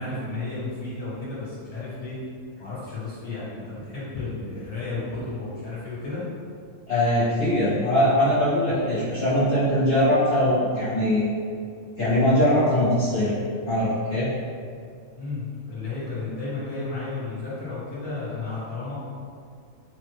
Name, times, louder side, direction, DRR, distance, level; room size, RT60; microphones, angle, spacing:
voice 1, 0.0-2.2 2.6-6.2 15.2-18.9, left 3 dB, 30° left, -9 dB, 1.1 m, -33 dB
voice 2, 6.9-11.3 12.0-13.3 13.7-14.3, left 1 dB, 55° left, -12 dB, 0.9 m, -21 dB
3.5 x 2.0 x 3.3 m, 2.2 s
omnidirectional pair, 1.4 m